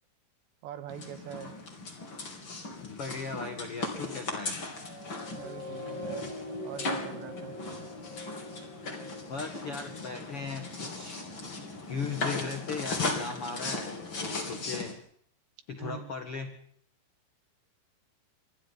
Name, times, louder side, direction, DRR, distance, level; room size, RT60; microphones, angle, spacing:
voice 1, 0.6-1.6 5.3-6.4 6.6-7.6 15.8-16.1, right 10 dB, 75° right, 10 dB, 3.5 m, -43 dB
sound 1, 0.9-14.9, left 3 dB, 30° left, 3.3 m, -37 dB
voice 2, 2.8-4.6 9.3-11.3 11.9-15.0 15.7-16.6, left 5 dB, 65° left, 5 dB, 1.3 m, -38 dB
sound 2, 4.5-11.2 11.8-11.9, left 1 dB, 10° right, 2.5 m, -43 dB
27.5 x 25.5 x 4.1 m, 0.63 s
omnidirectional pair, 5.2 m